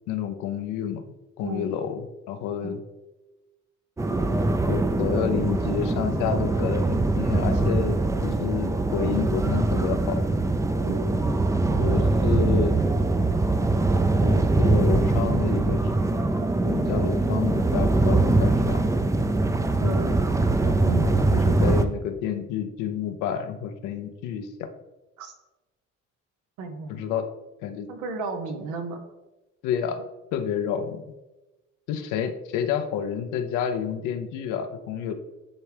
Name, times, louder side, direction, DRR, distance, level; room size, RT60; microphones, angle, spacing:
voice 1, 0.1-2.8 4.7-10.2 11.8-12.8 14.2-15.9 16.6-18.8 19.8-20.0 20.6-24.7 26.9-27.2 27.6-27.9 29.6-31.0 31.9-35.1, left 8 dB, 90° left, 8 dB, 0.6 m, -29 dB
sound 1, 4.0-21.8, right 2 dB, 10° right, 0.4 m, -22 dB
voice 2, 10.8-11.1 19.8-20.1 25.2-25.3 26.6-27.0 27.9-29.0, right 3 dB, 85° right, 5 dB, 0.9 m, -33 dB
9.9 x 3.5 x 3.3 m, 1.1 s
cardioid pair, 80°, 30 cm